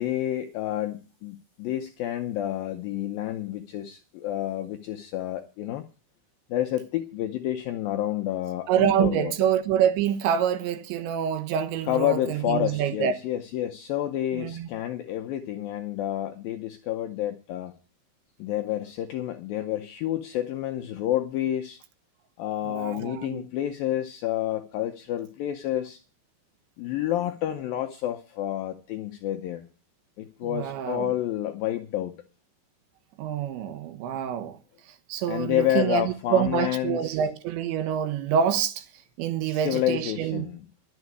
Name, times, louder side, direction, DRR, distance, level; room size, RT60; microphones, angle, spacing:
voice 1, 0.0-5.8 6.5-9.3 11.9-17.7 18.4-21.8 22.4-26.0 26.8-29.7 30.2-32.2 35.3-37.2 39.4-40.6, left 12 dB, 85° left, 2.0 m, -29 dB
voice 2, 8.7-13.1 14.3-14.7 22.7-23.4 30.4-31.1 33.2-34.6 35.1-38.8 39.2-40.5, right 9 dB, 80° right, 3.4 m, -26 dB
12.0 x 7.4 x 9.4 m
omnidirectional pair, 5.1 m